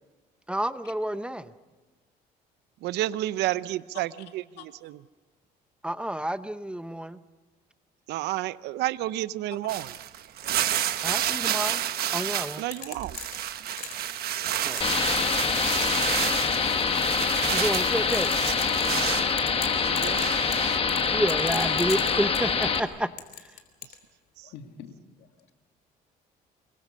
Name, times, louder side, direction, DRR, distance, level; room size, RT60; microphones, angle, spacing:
voice 1, 0.5-1.5 5.8-7.2 11.0-11.8 12.1-12.6 14.6-14.8 17.5-18.3 21.1-23.1, right 1 dB, 5° right, 13 dB, 0.7 m, -29 dB
voice 2, 2.8-5.0 8.1-9.9 12.6-13.2 19.9-20.2 24.4-24.5, right 15 dB, 80° right, 17 dB, 0.7 m, -31 dB
sound 1, 9.7-12.7 13.0-19.3 19.8-20.8, right 11 dB, 65° right, 1.2 m, -30 dB
sound 2, 11.3-11.5 12.7-14.1 14.8-15.4 15.7-16.6 17.0-17.2 17.6-19.1 19.4-22.8 23.2-24.0, left 10 dB, 65° left, 3.3 m, -39 dB
sound 3, 14.8-22.8, left 5 dB, 35° left, 1.5 m, -25 dB
voice 3, 22.1-22.5 24.4-24.9 25.2-25.5, left 9 dB, 80° left, 6 dB, 2.2 m, -44 dB
25.5 x 22.5 x 6.4 m, 1.3 s
cardioid pair, 110°, 17 cm